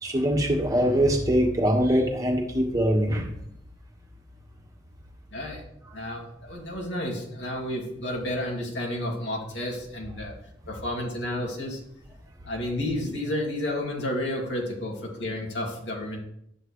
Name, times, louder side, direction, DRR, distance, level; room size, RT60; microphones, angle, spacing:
voice 1, 0.0-3.3, equal, 20° right, 0 dB, 1.7 m, -23 dB
voice 2, 5.3-5.6 5.9-10.3 10.7-11.8 12.4-16.2, left 1 dB, 65° left, -1 dB, 2.6 m, -31 dB
11.5 x 9.5 x 3.3 m, 0.74 s
head